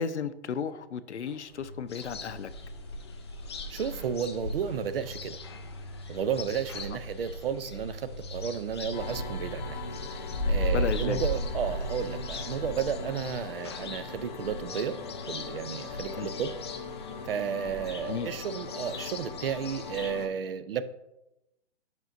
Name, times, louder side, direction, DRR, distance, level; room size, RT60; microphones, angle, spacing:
voice 1, 0.0-2.5 10.7-11.2 16.2-16.3 18.1-18.3, left 6 dB, 75° left, 13 dB, 0.6 m, -33 dB
sound 1, 1.2-19.7, equal, 15° right, 1.7 m, -47 dB
sound 2, 1.9-20.2, left 1 dB, 25° left, 0.4 m, -37 dB
voice 2, 3.7-5.4 6.1-9.8 10.5-15.0 15.2-16.5 17.2-20.8, right 7 dB, 55° right, 13 dB, 0.6 m, -33 dB
sound 3, 8.9-20.3, left 5 dB, 40° left, 0.8 m, -41 dB
9.4 x 6.1 x 2.5 m, 0.92 s
hypercardioid pair, 140°, 35 cm